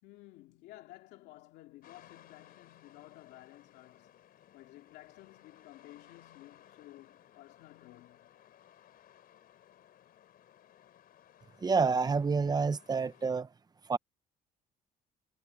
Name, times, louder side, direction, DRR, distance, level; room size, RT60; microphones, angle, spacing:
voice 1, 0.0-8.3, left 16 dB, 90° left, 2.7 m, -54 dB
sound 1, 1.8-13.3, left 11 dB, 60° left, 4.1 m, -60 dB
voice 2, 11.6-13.5 13.9-14.0, right 4 dB, 25° right, 1.0 m, -28 dB
cardioid pair, 110°, 17 cm